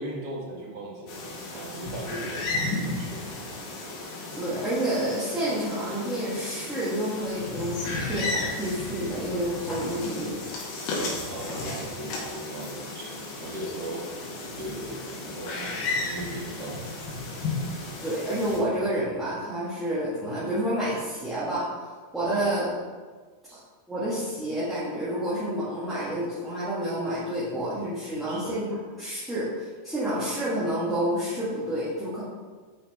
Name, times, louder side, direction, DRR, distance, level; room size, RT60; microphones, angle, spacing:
voice 1, 0.0-3.8 11.3-14.0 14.6-16.8 22.2-22.6 23.5-23.6 28.3-28.6, right 1 dB, 40° right, -3 dB, 1.4 m, -38 dB
sound 1, 1.1-18.6, left 2 dB, 40° left, 1.9 m, -34 dB
voice 2, 4.3-10.4 18.0-21.9 22.1-22.7 23.9-32.2, right 1 dB, 5° right, -13 dB, 2.0 m, -29 dB
9.1 x 4.4 x 3.1 m, 1.5 s
figure-of-eight pair, 90°, 0 cm